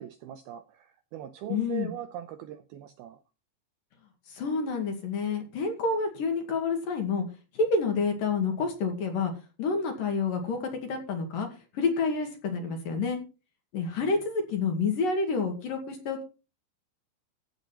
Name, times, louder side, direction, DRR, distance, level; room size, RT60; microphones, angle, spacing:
voice 1, 0.0-3.2 13.9-14.1, right 11 dB, 85° right, 2.2 m, -40 dB
voice 2, 1.5-1.9 4.3-7.3 7.5-9.3 9.6-11.5 11.7-13.2 13.7-16.2, left 4 dB, 55° left, 3.5 m, -28 dB
15.0 x 7.1 x 4.4 m
omnidirectional pair, 5.3 m